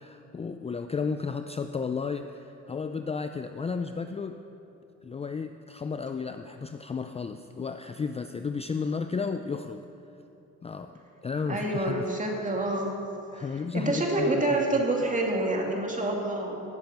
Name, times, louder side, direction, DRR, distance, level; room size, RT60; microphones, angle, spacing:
voice 1, 0.0-4.4 5.0-9.8 10.6-12.1 13.3-14.3 14.7-14.8, left 5 dB, 20° left, 8 dB, 0.4 m, -33 dB
voice 2, 11.5-12.9 13.3-13.4 13.7-16.6, right 2 dB, 25° right, 0 dB, 2.5 m, -27 dB
17.5 x 7.2 x 5.8 m, 2.9 s
cardioid pair, 90°, 30 cm